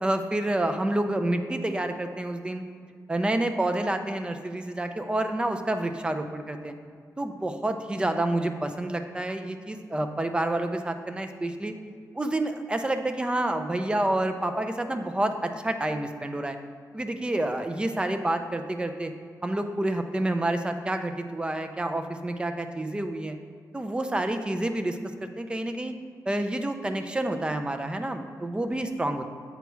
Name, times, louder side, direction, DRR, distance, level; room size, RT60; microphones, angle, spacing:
voice 1, 0.0-2.6 3.1-6.7 7.2-11.7 12.1-16.6 16.9-19.1 19.4-23.4 23.7-25.9 26.3-29.2, right 1 dB, 15° right, 7 dB, 0.4 m, -28 dB
8.0 x 4.6 x 3.1 m, 2.1 s
wide cardioid pair, 135°, 7 cm